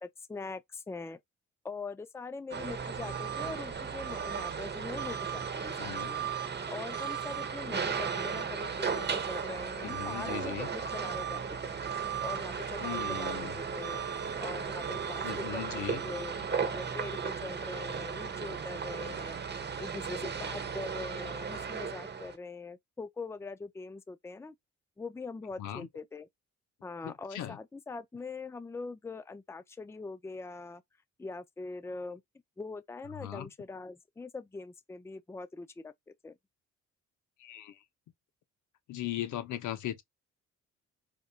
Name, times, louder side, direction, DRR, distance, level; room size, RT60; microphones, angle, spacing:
voice 1, 0.0-1.2 1.6-6.3 6.7-11.8 12.2-14.0 14.4-19.4 19.8-24.5 25.0-26.3 26.8-30.8 31.2-32.2 32.6-35.9 36.2-36.4, left 3 dB, 10° left, 0.5 m, -42 dB
sound 1, 2.5-22.4, right 6 dB, 35° right, 1.1 m, -35 dB
voice 2, 5.8-6.1 9.8-10.7 12.8-13.5 15.2-16.0 25.6-25.9 27.0-27.6 33.2-33.5 37.4-37.8 38.9-40.0, left 12 dB, 80° left, 0.9 m, -38 dB
4.9 x 2.6 x 2.4 m
cardioid pair, 90°, 30 cm